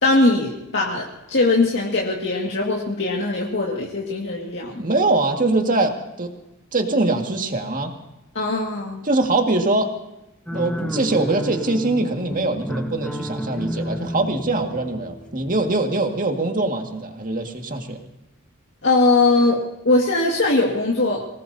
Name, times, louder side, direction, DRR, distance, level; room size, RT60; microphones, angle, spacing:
voice 1, 0.0-4.8 8.4-9.0 18.8-21.3, left 2 dB, 60° left, -2 dB, 2.0 m, -20 dB
voice 2, 4.8-6.3 6.7-7.9 9.0-9.9 10.5-18.0, right 2 dB, 40° right, 3 dB, 1.9 m, -22 dB
sound 1, 10.5-15.8, equal, 5° left, 1.1 m, -31 dB
25.0 x 18.5 x 2.8 m, 0.93 s
head